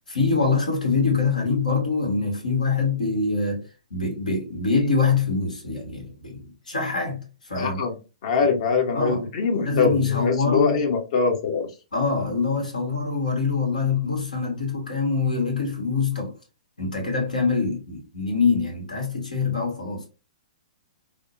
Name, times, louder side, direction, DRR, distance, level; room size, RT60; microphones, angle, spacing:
voice 1, 0.1-3.6 3.9-7.8 8.9-9.2 9.5-10.8 11.9-16.3 16.8-20.1, left 4 dB, 85° left, 1.6 m, -24 dB
voice 2, 7.6-11.7, left 5 dB, 55° left, 1.1 m, -23 dB
3.4 x 2.3 x 2.7 m
hypercardioid pair, 120°, 4 cm